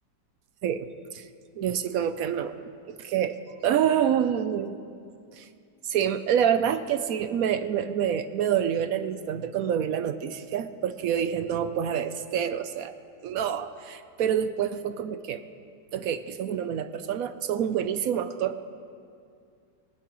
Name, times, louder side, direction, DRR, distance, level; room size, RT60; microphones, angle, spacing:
voice 1, 0.6-1.3 1.6-2.5 2.9-3.4 3.6-4.8 5.3-5.5 5.8-12.9 13.2-15.4 15.9-18.6, right 9 dB, 70° right, 11 dB, 0.8 m, -27 dB
20.0 x 17.0 x 3.0 m, 2.3 s
omnidirectional pair, 2.0 m